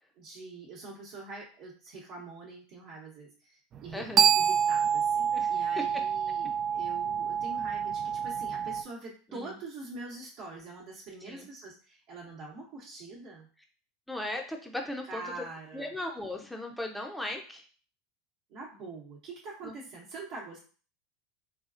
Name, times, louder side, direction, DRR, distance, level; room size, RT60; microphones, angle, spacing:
voice 1, 0.2-4.0 4.4-13.5 15.1-15.9 18.5-20.6, right 3 dB, 55° right, -5 dB, 1.0 m, -44 dB
sound 1, 3.7-8.8, right 8 dB, 40° right, 0.3 m, -27 dB
voice 2, 3.9-4.3 5.3-5.5 9.3-9.5 11.3-11.5 14.1-15.4 15.7-17.6 19.6-19.8, left 1 dB, 5° left, 2 dB, 0.6 m, -37 dB
4.3 x 2.3 x 2.5 m, 0.39 s
hypercardioid pair, 90°, 0 cm